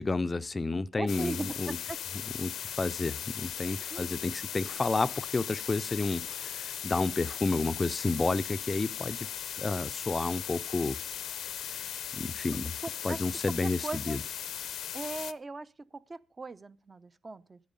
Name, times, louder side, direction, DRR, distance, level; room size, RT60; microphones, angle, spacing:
voice 1, 0.0-1.8 2.4-9.3 9.6-11.0 12.2-12.7 13.0-14.2, left 3 dB, 25° left, 0.5 m, -31 dB
voice 2, 1.0-2.0 3.9-4.0 12.5-13.3 13.6-14.2 14.9-17.6, right 3 dB, 30° right, 0.7 m, -39 dB
sound 1, 1.1-15.3, left 10 dB, 70° left, 0.7 m, -38 dB
13.0 x 10.5 x 5.2 m
cardioid pair, 90°, 0 cm